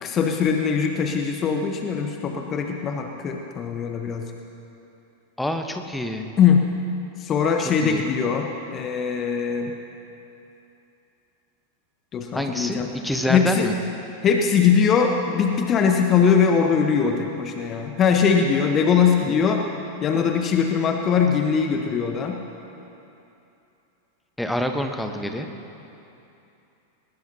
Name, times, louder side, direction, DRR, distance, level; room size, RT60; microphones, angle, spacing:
voice 1, 0.0-4.3 6.4-6.6 7.2-9.7 12.1-12.9 13.3-13.7 14.2-19.6 20.0-22.4, left 6 dB, 30° left, 4 dB, 1.1 m, -21 dB
voice 2, 5.4-6.3 7.8-8.0 12.3-13.7 24.4-25.5, left 1 dB, 5° left, 5 dB, 1.2 m, -27 dB
20.5 x 19.5 x 2.9 m, 2.8 s
figure-of-eight pair, 90°, 0 cm